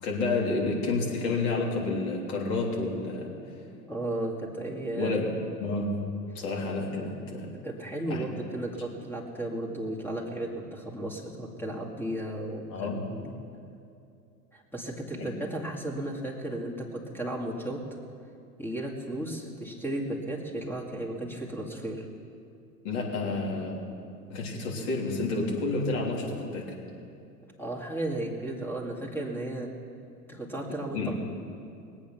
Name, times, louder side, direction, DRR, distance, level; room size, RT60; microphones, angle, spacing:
voice 1, 0.0-3.3 4.9-5.3 5.6-5.9 6.4-7.5 8.1-8.4 12.7-13.0 15.2-15.3 22.8-23.7 24.3-26.6 30.9-31.1, left 3 dB, 50° left, -2 dB, 3.6 m, -30 dB
voice 2, 3.8-5.2 7.6-13.3 14.5-17.8 18.6-22.1 27.6-29.7 30.3-31.0, right 1 dB, 5° left, -1 dB, 2.2 m, -34 dB
21.0 x 8.7 x 6.1 m, 2.5 s
figure-of-eight pair, 95°, 49 cm